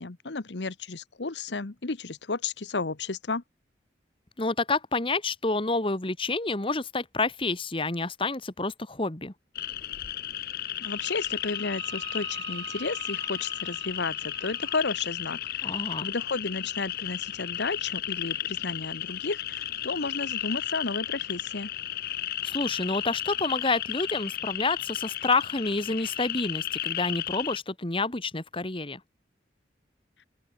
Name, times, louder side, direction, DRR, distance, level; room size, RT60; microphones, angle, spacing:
voice 1, 0.0-3.4 10.5-21.7, left 3 dB, 80° left, 1.1 m, -33 dB
voice 2, 4.4-9.3 15.6-16.1 22.4-29.0, left 3 dB, 30° left, 1.6 m, -29 dB
sound 1, 9.5-27.6, left 12 dB, 55° left, 1.0 m, -34 dB
Wind instrument woodwind instrument, 10.8-14.9, right 6 dB, 80° right, 3.6 m, -45 dB
open air
head